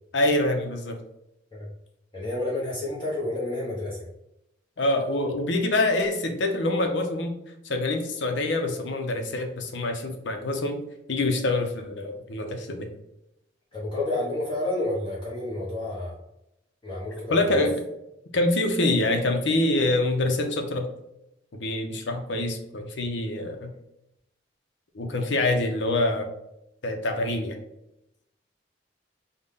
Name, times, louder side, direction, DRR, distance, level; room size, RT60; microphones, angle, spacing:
voice 1, 0.1-1.0 4.8-7.4 7.6-10.8 11.1-12.9 17.3-17.8 18.3-20.9 21.5-23.7 24.9-26.3 26.8-27.6, left 2 dB, 75° left, 4 dB, 0.6 m, -25 dB
voice 2, 2.1-4.1 13.7-16.1 16.8-17.6, left 1 dB, 25° left, -6 dB, 0.9 m, -30 dB
5.3 x 2.1 x 3.6 m, 0.84 s
head